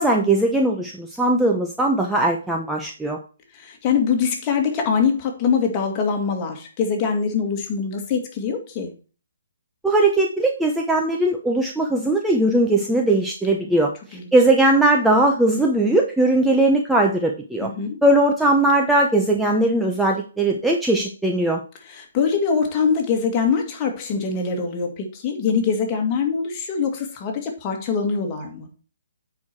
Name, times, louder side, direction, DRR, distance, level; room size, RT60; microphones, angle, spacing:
voice 1, 0.0-3.2 9.8-13.9 14.3-17.7 18.0-21.6, right 2 dB, 5° right, 0.8 m, -19 dB
voice 2, 3.5-8.9 13.6-13.8 14.1-14.3 17.6-18.0 21.8-28.7, left 6 dB, 30° left, 2.1 m, -23 dB
9.6 x 4.8 x 4.4 m
figure-of-eight pair, 135°, 0 cm